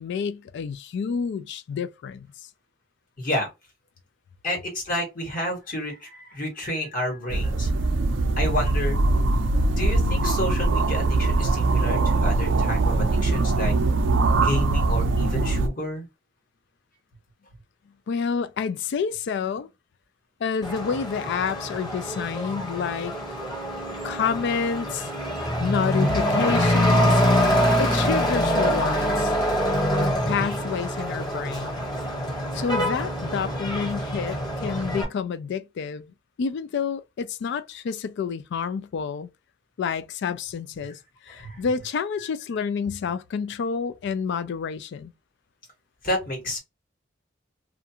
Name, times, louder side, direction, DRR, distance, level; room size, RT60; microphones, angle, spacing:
voice 1, 0.0-2.3 18.1-19.7 20.4-23.1 24.0-25.1 25.6-27.2 27.8-29.3 30.0-31.8 32.5-39.3 39.8-41.0 41.3-45.1, left 6 dB, 60° left, 0.3 m, -29 dB
voice 2, 3.2-3.5 4.4-7.7 8.4-9.0 9.7-13.7 14.4-16.1 41.3-41.6 46.0-46.6, left 1 dB, 45° left, 1.3 m, -30 dB
sound 1, 7.3-15.7, right 2 dB, 65° right, 0.5 m, -22 dB
Truck / Accelerating revving vroom, 20.6-35.0, equal, 20° left, 1.0 m, -25 dB
2.5 x 2.3 x 2.7 m
head